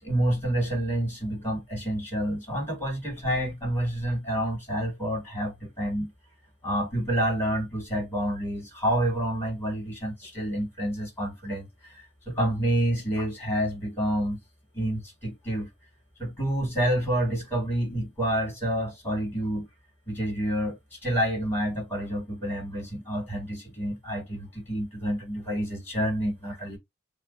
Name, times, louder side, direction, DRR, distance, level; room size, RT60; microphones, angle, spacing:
voice 1, 0.0-6.1 6.6-11.7 11.9-14.4 14.7-15.7 16.2-19.7 20.1-26.8, right 1 dB, 10° left, 3.4 m, -28 dB
6.4 x 2.1 x 2.8 m
head